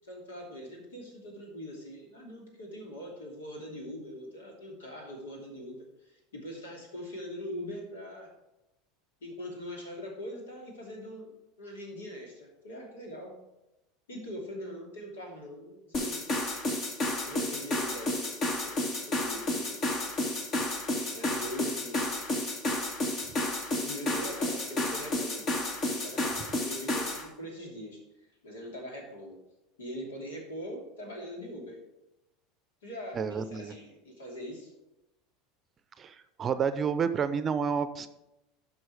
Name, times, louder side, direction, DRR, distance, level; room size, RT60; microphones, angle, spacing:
voice 1, 0.0-8.3 9.2-13.3 14.1-16.3 17.2-18.8 19.0-19.7 21.1-22.0 23.8-25.5 25.9-28.0 28.4-29.4 29.8-31.8 32.8-34.7, equal, 75° left, 0 dB, 2.8 m, -42 dB
sound 1, 15.9-27.2, left 1 dB, 40° left, 2.0 m, -31 dB
voice 2, 33.2-33.7 36.0-38.1, right 6 dB, 30° right, 12 dB, 0.6 m, -30 dB
11.0 x 5.8 x 4.8 m, 0.92 s
figure-of-eight pair, 80°, 0 cm